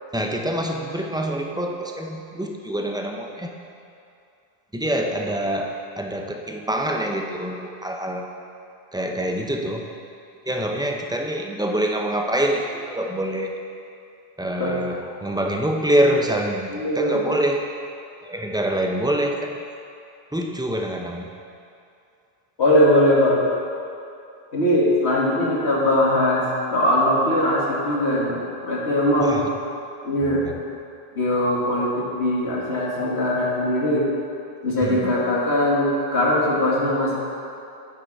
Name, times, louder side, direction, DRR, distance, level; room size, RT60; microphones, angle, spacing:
voice 1, 0.1-3.5 4.7-5.7 6.0-8.2 8.9-9.9 10.4-13.5 14.4-17.7 18.2-19.6 20.3-21.3 29.2-29.5 30.3-30.5 34.8-35.2, right 1 dB, 5° right, 1 dB, 0.5 m, -25 dB
voice 2, 16.7-17.3 22.6-23.4 24.5-29.4 30.0-30.4 31.2-34.1 34.6-37.1, left 1 dB, 80° left, -5 dB, 2.1 m, -20 dB
8.7 x 8.5 x 4.7 m, 2.5 s
omnidirectional pair, 1.1 m